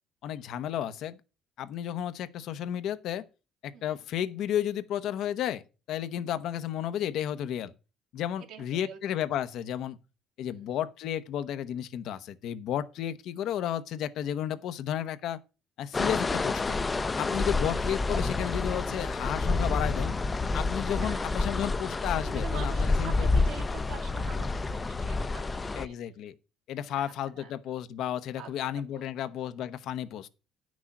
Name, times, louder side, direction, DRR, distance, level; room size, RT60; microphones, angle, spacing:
voice 1, 0.2-1.2 1.6-3.2 3.6-5.6 5.9-7.7 8.1-10.0 10.4-15.4 15.8-16.8 17.2-20.1 20.5-23.3 25.8-26.3 26.7-30.3, left 10 dB, 70° left, 0.8 m, -33 dB
voice 2, 3.7-4.0 6.2-6.4 8.5-9.0 10.5-10.8 17.7-17.8 20.9-21.4 22.2-26.0 26.9-27.5 28.4-29.0, right 8 dB, 75° right, 2.3 m, -46 dB
sound 1, 15.9-25.9, left 3 dB, 20° left, 0.5 m, -29 dB
9.8 x 6.2 x 5.9 m
cardioid pair, 125°, 0 cm